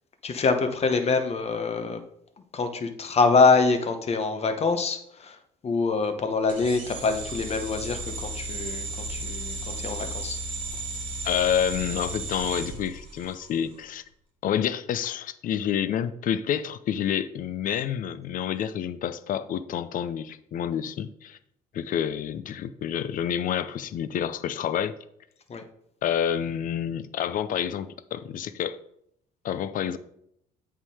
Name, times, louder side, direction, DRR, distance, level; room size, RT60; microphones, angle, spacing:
voice 1, 0.2-2.0 2.5-5.4 5.6-10.4 25.5-25.6, left 4 dB, 40° left, 6 dB, 1.0 m, -25 dB
sound 1, 6.5-13.6, right 2 dB, 30° right, 1.9 m, -34 dB
voice 2, 11.2-14.0 14.4-21.4 21.7-25.0 26.0-28.8 29.4-30.0, left 9 dB, 55° left, 14 dB, 0.5 m, -28 dB
8.2 x 3.7 x 4.9 m, 0.73 s
cardioid pair, 110°, 17 cm